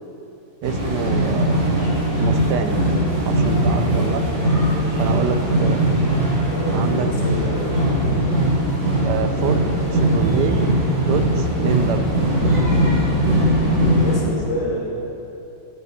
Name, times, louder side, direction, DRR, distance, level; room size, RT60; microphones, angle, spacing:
voice 1, 0.6-1.6 2.2-2.8 3.2-4.2 5.0-6.0 6.7-7.1 9.0-10.6 11.1-12.2, right 7 dB, 75° right, 7 dB, 1.1 m, -26 dB
sound 1, 0.6-14.2, right 1 dB, 90° right, 3.8 m, -20 dB
voice 2, 6.5-8.1 13.8-14.9, left 1 dB, 75° left, -3 dB, 2.6 m, -29 dB
14.5 x 9.4 x 4.2 m, 2.8 s
omnidirectional pair, 2.0 m